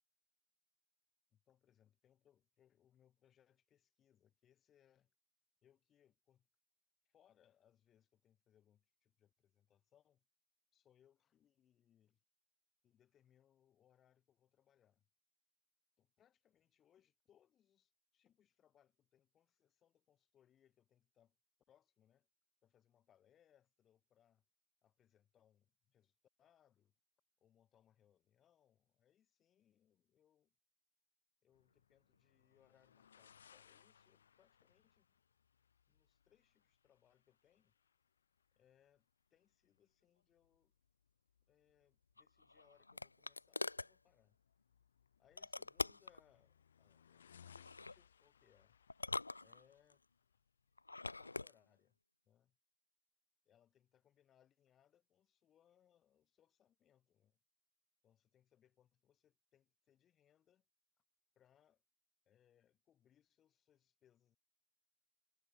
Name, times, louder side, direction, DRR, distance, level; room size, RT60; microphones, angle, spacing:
voice 1, 1.3-5.1 5.6-6.5 7.0-10.2 10.7-12.2 12.8-15.1 16.0-21.4 21.7-22.3 22.6-24.4 24.8-26.9 27.4-30.6 31.4-35.2 35.9-37.7 38.6-40.8 41.5-44.4 45.2-48.8 49.4-50.0 51.2-52.0 52.2-52.6 53.4-57.4 58.0-60.7 61.3-61.8 62.2-64.4, left 10 dB, 10° left, 4.7 m, -74 dB
sound 1, 31.5-51.2, left 8 dB, 50° left, 2.9 m, -69 dB
Opening glass pill bottle, 42.2-43.9 45.4-46.2 47.5-48.0 48.9-49.9 50.8-51.5, left 3 dB, 85° left, 0.6 m, -44 dB
figure-of-eight pair, 150°, 0 cm